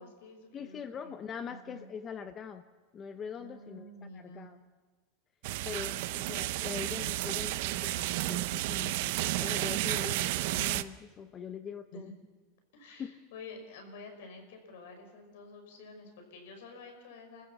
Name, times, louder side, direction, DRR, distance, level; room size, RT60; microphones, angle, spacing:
voice 1, 0.0-1.2 1.4-1.9 3.4-4.6 11.9-12.0 12.7-17.5, left 2 dB, 75° left, 5 dB, 5.6 m, -49 dB
voice 2, 0.5-2.6 2.9-4.6 5.7-12.1 13.0-13.2, left 6 dB, 20° left, 10 dB, 0.7 m, -42 dB
sound 1, 5.4-10.8, right 17 dB, 60° right, 0.7 m, -32 dB
29.5 x 15.0 x 7.2 m, 1.3 s
supercardioid pair, 165°, 0 cm